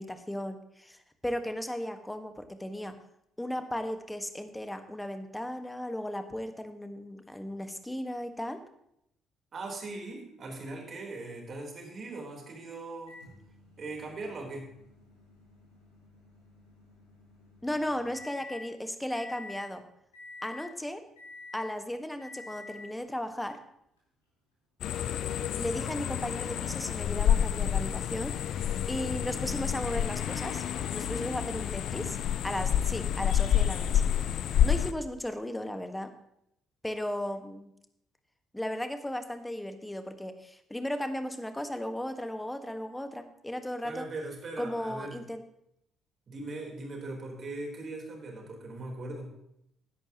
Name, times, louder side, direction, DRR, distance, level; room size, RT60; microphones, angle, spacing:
voice 1, 0.0-2.9 3.4-8.6 17.6-19.8 20.4-21.0 21.5-23.6 25.6-28.3 28.9-30.6 30.9-32.2 32.4-34.0 34.6-36.1 36.8-37.7 38.5-44.1 44.6-45.4, left 1 dB, 10° left, 8 dB, 1.5 m, -35 dB
voice 2, 9.5-13.2 13.8-14.7 43.8-45.2 46.3-49.3, right 2 dB, 45° right, 0 dB, 3.9 m, -40 dB
Microwave oven, 13.1-18.7 19.1-19.7 20.1-20.8 21.2-21.8 22.2-23.0 24.0-24.1 26.1-26.2, left 3 dB, 85° left, 4.0 m, -49 dB
sound 1, 24.8-34.9, left 10 dB, 60° left, 0.5 m, -29 dB
16.5 x 11.0 x 3.0 m, 0.76 s
figure-of-eight pair, 45°, 0 cm